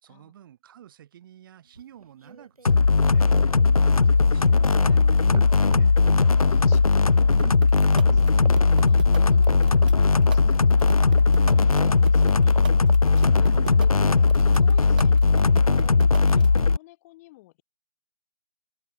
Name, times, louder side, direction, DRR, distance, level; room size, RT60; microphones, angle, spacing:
voice 1, 0.0-3.3 3.6-6.0 13.3-13.6, right 11 dB, 35° right, 5.3 m, -49 dB
sound 1, 1.7-5.1 5.3-6.4 6.7-9.0 9.5-10.4 10.8-11.7 12.2-14.5 15.0-15.9 16.4-16.5, right 3 dB, 80° right, 1.7 m, -40 dB
sound 2, 2.7-16.8, left 4 dB, 75° left, 0.8 m, -18 dB
voice 2, 6.5-7.3 7.9-12.9 13.2-15.5 15.8-17.6, left 19 dB, 25° left, 5.2 m, -50 dB
sound 3, 7.4-16.6, right 10 dB, 15° right, 0.3 m, -35 dB
figure-of-eight pair, 140°, 19 cm